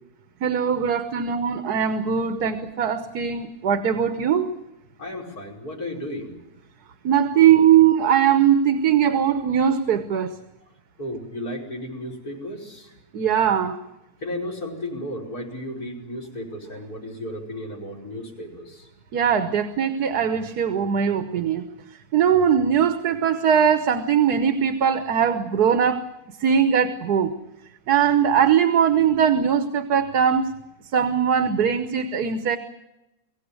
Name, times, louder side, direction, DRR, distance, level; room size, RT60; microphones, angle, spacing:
voice 1, 0.4-4.5 7.0-10.3 13.1-13.8 19.1-21.6 22.1-26.0 26.4-27.3 27.9-30.5 30.9-32.6, right 8 dB, 75° right, 9 dB, 1.6 m, -20 dB
voice 2, 5.0-6.3 11.0-12.9 14.2-18.9, left 1 dB, 65° left, -2 dB, 5.7 m, -34 dB
23.5 x 16.5 x 9.7 m, 0.94 s
omnidirectional pair, 1.7 m